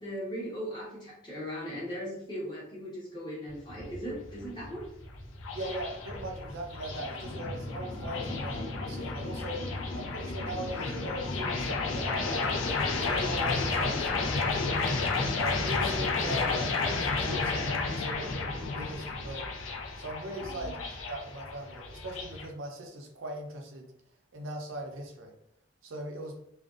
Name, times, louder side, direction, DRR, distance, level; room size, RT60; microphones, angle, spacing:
voice 1, 0.0-4.9 20.3-20.8, equal, 25° left, -6 dB, 0.9 m, -38 dB
sound 1, 3.5-22.5, left 3 dB, 85° left, 0.5 m, -32 dB
voice 2, 5.5-9.6 9.9-14.7 15.4-19.5 20.0-23.9 24.3-25.3 25.8-26.4, right 1 dB, 85° right, 2 dB, 0.5 m, -39 dB
2.5 x 2.2 x 2.4 m, 0.72 s
head